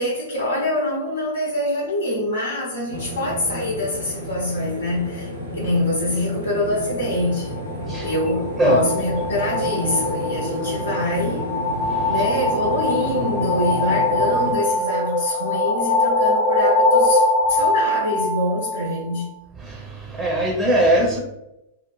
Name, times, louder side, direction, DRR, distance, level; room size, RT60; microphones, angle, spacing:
voice 1, 0.0-7.6 8.0-11.5 12.1-19.3, left 1 dB, 85° left, 0.6 m, -25 dB
sound 1, 2.9-14.5, equal, 85° right, 1.1 m, -31 dB
sound 2, 7.6-19.2, left 2 dB, 25° left, 0.7 m, -22 dB
voice 2, 19.6-21.2, right 1 dB, 15° right, 0.5 m, -21 dB
2.5 x 2.0 x 3.1 m
figure-of-eight pair, 105°, 0 cm